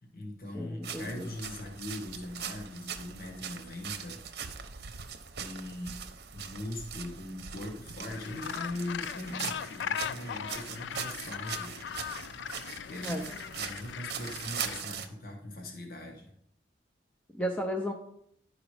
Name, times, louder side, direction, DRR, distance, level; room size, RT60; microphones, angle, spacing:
voice 1, 0.0-4.2 4.8-5.1 5.4-6.0 6.3-11.8 12.5-13.2 13.6-16.3, left 1 dB, 55° left, 2 dB, 1.5 m, -41 dB
voice 2, 0.5-1.3 13.0-13.2 17.3-17.9, equal, 10° left, 2 dB, 0.6 m, -33 dB
sound 1, 0.8-15.1, right 7 dB, 65° right, 0.8 m, -41 dB
Gull seagull, 8.1-14.8, left 8 dB, 85° left, 0.3 m, -39 dB
10.5 x 5.0 x 5.0 m, 0.73 s
head